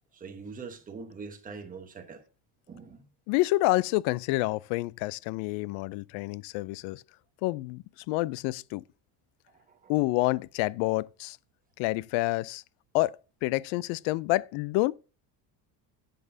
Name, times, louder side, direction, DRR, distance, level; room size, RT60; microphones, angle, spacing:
voice 1, 0.1-2.3 2.7-3.1 9.5-9.9, right 4 dB, 15° right, 1.1 m, -43 dB
voice 2, 3.3-7.0 7.4-8.8 9.9-11.4 11.8-12.6 12.9-14.9, left 19 dB, 80° left, 0.5 m, -28 dB
11.0 x 7.8 x 2.7 m
cardioid pair, 170°, 47 cm